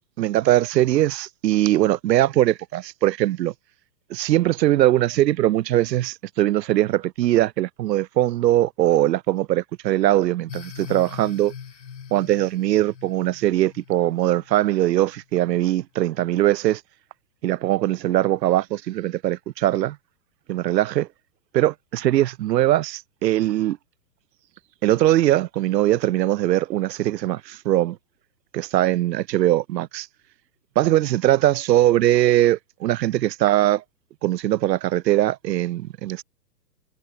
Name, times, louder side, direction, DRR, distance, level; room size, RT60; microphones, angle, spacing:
voice 1, 0.2-3.5 4.1-11.5 12.1-16.8 17.4-20.0 20.5-21.1 21.5-23.8 24.8-28.0 28.5-30.1 30.8-33.8 34.2-36.2, right 14 dB, 80° right, 0.7 m, -21 dB
sound 1, 10.5-15.0, left 7 dB, 80° left, 2.9 m, -41 dB
hypercardioid pair, 170°, 50 cm